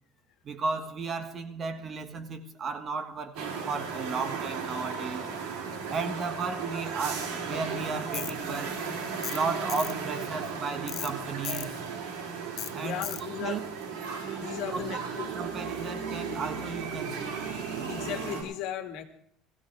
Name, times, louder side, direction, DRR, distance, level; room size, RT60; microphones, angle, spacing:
voice 1, 0.4-5.3 5.9-8.8 9.3-11.7 12.7-13.6 14.7-15.0 15.3-17.4, right 4 dB, 35° right, 1.5 m, -34 dB
sound 1, 3.4-18.4, right 5 dB, 80° right, 5.7 m, -35 dB
Tools, 8.1-8.3 9.2-9.4 9.7-9.9 10.9-11.1 11.4-11.7 12.6-12.7 13.0-13.2, left 12 dB, 50° left, 0.6 m, -36 dB
voice 2, 12.8-13.6 14.2-15.3 16.3-16.4 17.9-19.0, left 10 dB, 65° left, 2.1 m, -36 dB
20.0 x 15.5 x 3.5 m
cardioid pair, 140°, 0 cm